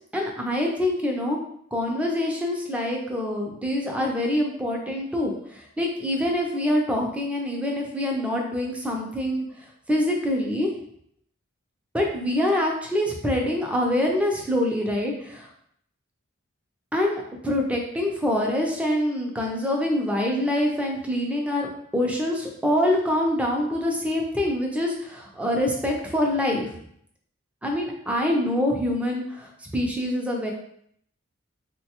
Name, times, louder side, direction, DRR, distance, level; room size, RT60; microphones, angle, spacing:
voice 1, 0.1-1.4 1.7-9.4 9.9-10.7 11.9-15.5 16.9-26.7 27.6-30.5, left 1 dB, 5° right, 0 dB, 0.5 m, -25 dB
3.9 x 2.2 x 2.8 m, 0.68 s
head